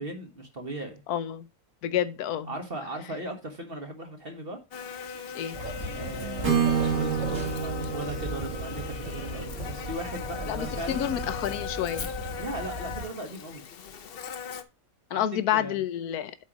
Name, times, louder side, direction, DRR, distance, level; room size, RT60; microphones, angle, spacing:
voice 1, 0.0-1.0 2.5-4.6 5.9-11.1 12.4-13.6 15.1-15.8, right 1 dB, 40° right, 1.6 m, -38 dB
voice 2, 1.1-1.5 1.8-2.5 5.3-5.9 10.5-12.1 15.1-16.4, left 11 dB, 80° left, 1.2 m, -29 dB
Buzz, 4.7-14.6, left 7 dB, 50° left, 0.7 m, -39 dB
Gasoil train leaves station slowly. Tupiza Bolivia., 5.5-13.0, right 1 dB, 65° right, 4.1 m, -37 dB
Acoustic guitar / Strum, 6.4-10.4, right 7 dB, 80° right, 2.5 m, -29 dB
8.4 x 4.5 x 5.0 m
omnidirectional pair, 1.6 m